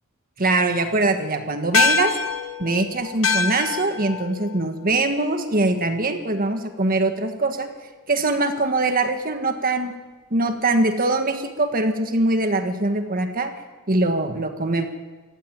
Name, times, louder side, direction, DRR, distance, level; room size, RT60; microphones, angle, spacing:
voice 1, 0.4-2.1 2.6-7.7 8.1-9.9 10.3-13.5 13.9-14.9, right 2 dB, 45° right, 6 dB, 1.6 m, -22 dB
sound 1, 1.7-6.4, left 5 dB, 70° left, 1.4 m, -26 dB
19.5 x 15.5 x 9.0 m, 1.3 s
head